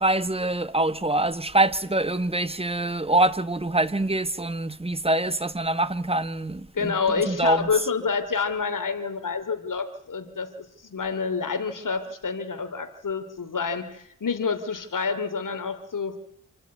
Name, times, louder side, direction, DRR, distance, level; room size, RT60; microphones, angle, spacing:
voice 1, 0.0-6.9 7.3-7.7, right 2 dB, 15° right, 1.3 m, -24 dB
voice 2, 6.7-16.2, left 5 dB, 55° left, 2.9 m, -28 dB
27.5 x 14.0 x 9.5 m
cardioid pair, 70°, 37 cm